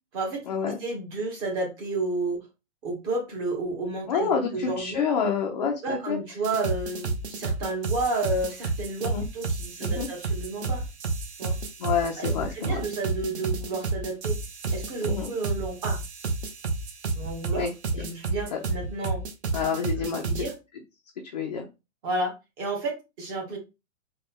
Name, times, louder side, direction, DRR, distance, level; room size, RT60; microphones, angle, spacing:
voice 1, 0.1-2.4 2.8-5.0 5.8-10.8 11.4-11.6 12.2-14.4 14.7-16.0 17.2-17.7 17.9-19.2 20.0-20.5 22.0-23.6, right 2 dB, 20° right, 0.7 m, -31 dB
voice 2, 4.1-6.2 9.0-9.2 9.8-10.1 11.8-12.8 15.0-15.3 17.6-17.7 18.5-18.6 19.5-20.2 21.3-21.6, left 6 dB, 35° left, 0.4 m, -28 dB
sound 1, 6.4-20.5, right 3 dB, 55° right, 0.9 m, -30 dB
4.3 x 2.2 x 3.5 m
hypercardioid pair, 160°, 41 cm